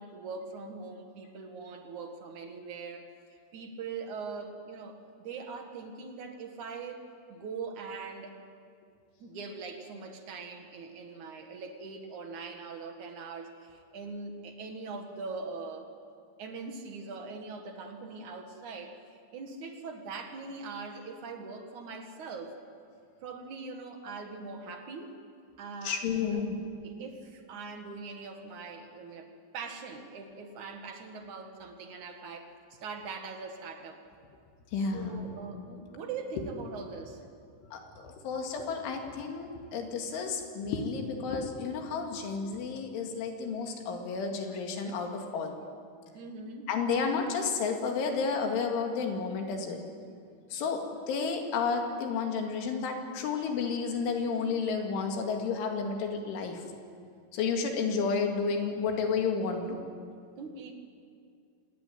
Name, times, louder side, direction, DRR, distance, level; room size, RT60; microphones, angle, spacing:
voice 1, 0.0-3.1 3.5-5.0 5.2-7.0 7.3-8.4 9.2-15.9 16.4-19.0 19.3-22.5 23.2-25.1 25.6-26.4 26.8-29.3 29.5-32.5 32.8-34.0 34.7-37.2 46.1-46.7 60.4-60.7, right 4 dB, 55° right, 5 dB, 2.5 m, -42 dB
voice 2, 25.8-26.6 34.7-35.3 37.7-45.5 46.7-49.8 50.5-50.8 51.1-56.6 57.3-59.9, left 5 dB, 80° left, 3 dB, 4.7 m, -31 dB
26.0 x 19.0 x 9.4 m, 2.3 s
omnidirectional pair, 5.4 m